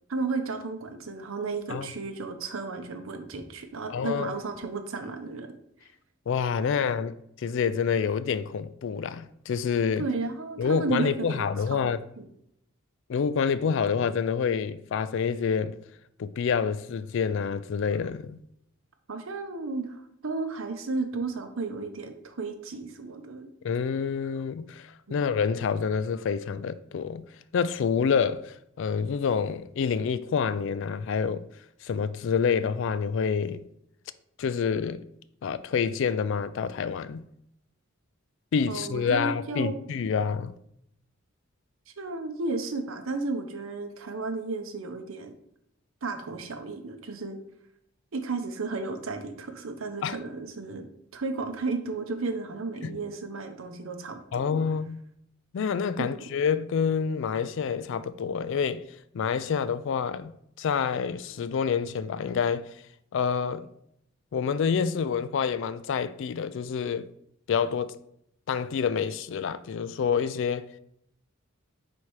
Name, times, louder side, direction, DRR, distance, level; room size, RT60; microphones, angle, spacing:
voice 1, 0.1-5.5 10.0-12.3 19.1-23.5 25.1-25.2 38.7-39.8 42.0-45.3 46.0-47.4 48.1-50.9 51.1-54.5 56.0-56.2, right 3 dB, 70° right, 0.8 m, -33 dB
voice 2, 3.9-4.3 6.3-10.1 10.6-12.0 13.1-15.8 16.2-18.4 23.6-27.2 27.5-31.5 31.8-33.6 34.4-35.0 35.4-37.2 38.5-40.5 50.0-50.2 52.9-53.0 54.3-55.0 55.5-58.8 59.1-60.3 60.6-62.7 63.1-63.7 64.3-67.1 67.5-67.9 68.5-70.7, left 6 dB, 60° left, 0.3 m, -27 dB
4.7 x 4.3 x 4.6 m
head